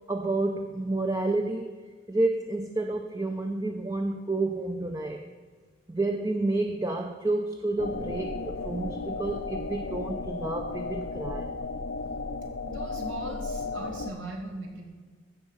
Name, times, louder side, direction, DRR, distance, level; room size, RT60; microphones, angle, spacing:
voice 1, 0.1-1.8 2.1-5.2 5.9-11.5, right 2 dB, 20° right, 4 dB, 0.5 m, -30 dB
sound 1, 7.8-14.1, left 3 dB, 80° left, 0.7 m, -34 dB
voice 2, 12.7-14.8, right 1 dB, 90° right, 0 dB, 2.4 m, -38 dB
15.5 x 6.0 x 5.4 m, 1.5 s
head